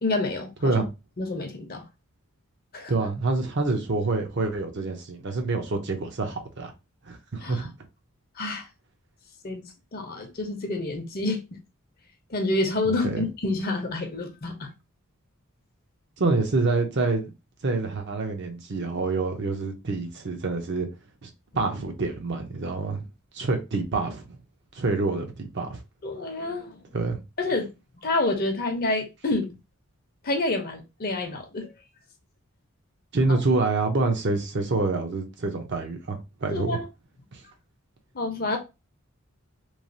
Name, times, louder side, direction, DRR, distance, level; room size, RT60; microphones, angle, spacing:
voice 1, 0.0-0.8 1.2-1.8 2.7-2.9 7.4-7.7 8.4-8.7 9.4-9.6 9.9-11.6 12.3-14.7 26.0-26.8 27.4-27.7 28.0-29.5 30.2-31.7 36.5-36.9 38.1-38.6, left 2 dB, 45° left, 0.7 m, -28 dB
voice 2, 2.9-6.7 7.0-7.6 12.9-13.2 16.2-17.3 17.6-20.9 21.2-21.3 21.5-23.1 23.3-24.4 24.7-25.8 26.9-27.2 33.1-36.8 37.3-37.4, right 3 dB, 50° right, 0.6 m, -27 dB
3.1 x 2.3 x 2.6 m
head